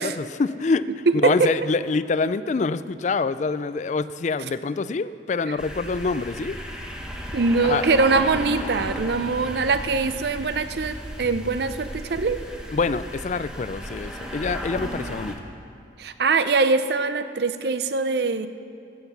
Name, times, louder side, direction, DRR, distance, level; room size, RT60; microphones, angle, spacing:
voice 1, 0.0-0.9 1.1-6.6 7.6-7.9 12.7-15.4, left 4 dB, 40° left, 15 dB, 0.3 m, -25 dB
voice 2, 1.1-1.5 5.5-5.6 7.3-12.4 16.0-18.5, right 4 dB, 60° right, 11 dB, 0.6 m, -22 dB
sound 1, 5.6-15.3, equal, 5° right, 1.0 m, -35 dB
15.0 x 7.9 x 6.9 m, 2.5 s
head